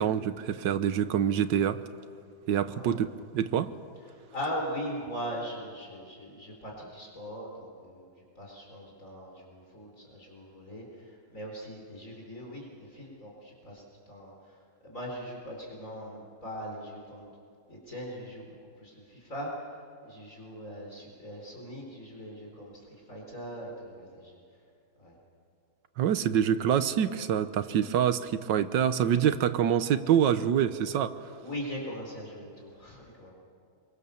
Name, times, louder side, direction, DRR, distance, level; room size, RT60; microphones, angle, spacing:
voice 1, 0.0-1.8 2.5-3.7 26.0-31.2, right 9 dB, 80° right, 11 dB, 1.6 m, -26 dB
voice 2, 4.3-8.1 8.4-14.3 14.8-17.3 17.7-19.5 20.0-24.4 25.0-25.1 31.4-33.3, equal, 45° left, -2 dB, 4.6 m, -40 dB
25.5 x 23.5 x 7.0 m, 2.4 s
omnidirectional pair, 1.9 m